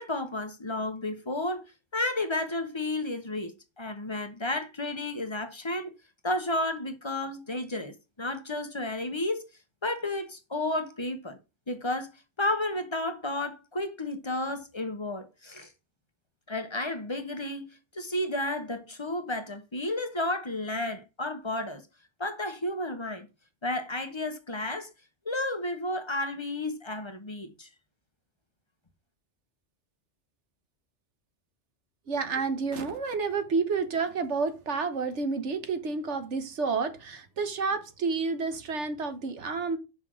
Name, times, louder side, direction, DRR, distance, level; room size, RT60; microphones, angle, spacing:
voice 1, 0.0-1.6 1.9-5.9 6.2-9.4 9.8-11.4 11.7-12.1 12.4-15.7 16.5-17.7 17.9-21.8 22.2-23.3 23.6-24.9 25.2-27.7, left 2 dB, 25° left, 1.0 m, -32 dB
voice 2, 32.1-39.8, right 4 dB, 70° right, 1.5 m, -30 dB
5.9 x 5.6 x 6.2 m
omnidirectional pair, 1.2 m